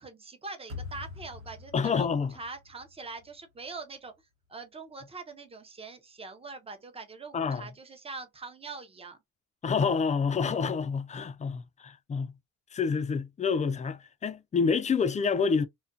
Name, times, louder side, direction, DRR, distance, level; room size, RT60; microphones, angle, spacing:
voice 1, 0.0-4.1 4.5-9.2, right 3 dB, 20° right, 0.6 m, -43 dB
sound 1, 0.7-3.8, left 4 dB, 85° right, 1.0 m, -45 dB
voice 2, 1.7-2.4 7.3-7.7 9.6-12.3 12.7-15.7, left 5 dB, 25° left, 0.3 m, -28 dB
2.4 x 2.2 x 2.6 m
cardioid pair, 90°, 30 cm